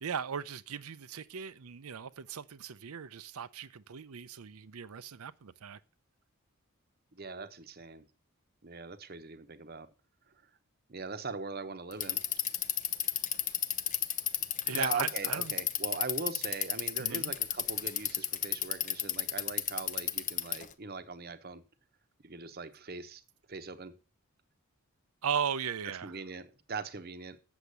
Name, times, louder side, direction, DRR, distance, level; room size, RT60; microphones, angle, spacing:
voice 1, 0.0-5.8 14.7-15.5 17.0-17.3 25.2-26.2, right 7 dB, 85° right, 0.6 m, -37 dB
voice 2, 7.1-8.0 8.6-9.9 10.9-12.2 14.7-21.6 22.2-23.2 23.5-23.9 26.0-27.4, right 4 dB, 45° right, 0.9 m, -40 dB
Bicycle, 11.9-20.7, left 10 dB, 35° left, 0.6 m, -32 dB
8.1 x 7.2 x 6.7 m
head